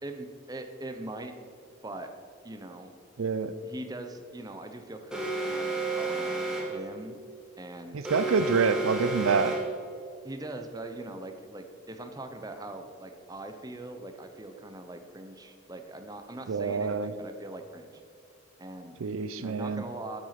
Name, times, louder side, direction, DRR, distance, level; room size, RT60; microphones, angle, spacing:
voice 1, 0.0-1.3 1.8-2.1 2.4-2.9 3.6-7.2 7.6-8.3 8.7-8.8 10.2-18.0 18.6-19.0 19.4-20.2, right 2 dB, 20° right, 6 dB, 0.7 m, -41 dB
voice 2, 3.2-3.5 7.9-9.6 16.5-17.1 19.0-19.8, right 5 dB, 90° right, 13 dB, 0.5 m, -27 dB
Alarm, 5.1-6.9 8.0-9.8, right 3 dB, 5° right, 1.5 m, -31 dB
9.0 x 8.1 x 5.8 m, 2.3 s
head